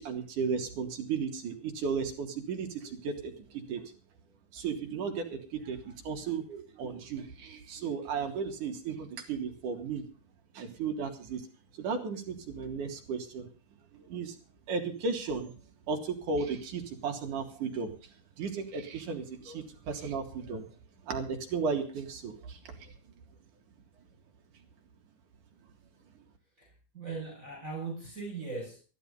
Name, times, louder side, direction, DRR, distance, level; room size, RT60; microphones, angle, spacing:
voice 1, 0.0-3.9 4.5-10.1 10.5-11.5 11.8-13.5 13.9-14.4 14.7-15.5 15.9-17.9 18.4-20.6 21.1-22.9, right 5 dB, 60° right, 4 dB, 3.4 m, -35 dB
voice 2, 26.6-28.8, right 4 dB, 20° right, -1 dB, 7.2 m, -39 dB
14.5 x 12.0 x 5.5 m, 0.36 s
omnidirectional pair, 4.3 m